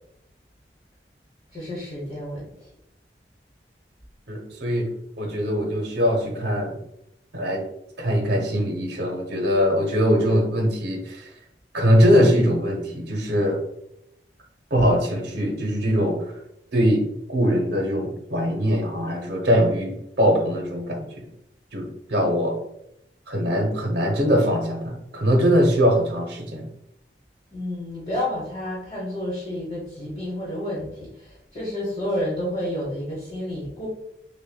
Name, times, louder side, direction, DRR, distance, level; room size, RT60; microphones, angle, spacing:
voice 1, 1.5-2.7 27.5-33.9, left 1 dB, 30° left, -6 dB, 1.0 m, -30 dB
voice 2, 4.3-4.9 5.2-6.8 7.3-7.6 8.0-11.3 11.7-13.6 14.7-16.3 16.7-21.3 21.7-22.6 23.3-26.7, equal, 75° right, 2 dB, 0.8 m, -22 dB
6.1 x 2.1 x 2.2 m, 0.80 s
head